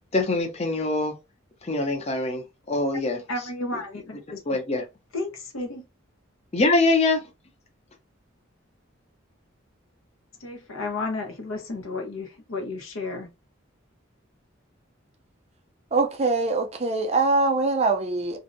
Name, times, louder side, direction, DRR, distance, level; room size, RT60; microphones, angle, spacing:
voice 1, 0.1-1.1 1.6-3.2 4.5-4.8 6.5-7.2, left 2 dB, 30° left, 0.5 m, -23 dB
voice 2, 3.3-4.6 5.1-5.8 10.4-13.3, left 3 dB, 85° left, 0.8 m, -32 dB
voice 3, 15.9-18.4, right 3 dB, 30° right, 0.4 m, -23 dB
2.5 x 2.1 x 2.5 m
head